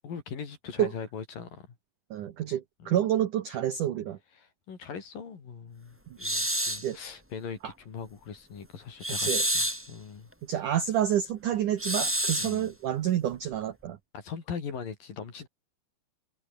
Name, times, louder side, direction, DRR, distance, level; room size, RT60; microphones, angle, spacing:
voice 1, 0.0-1.7 2.8-3.0 4.4-10.3 12.4-12.7 14.1-15.5, left 6 dB, 50° left, 5.0 m, -40 dB
voice 2, 2.1-4.2 6.8-7.0 7.6-7.7 9.2-9.4 10.5-14.0, right 11 dB, 70° right, 1.9 m, -28 dB
sound 1, 6.2-6.9 9.0-9.9 11.8-12.6, equal, 5° right, 3.1 m, -28 dB
omnidirectional pair, 5.4 m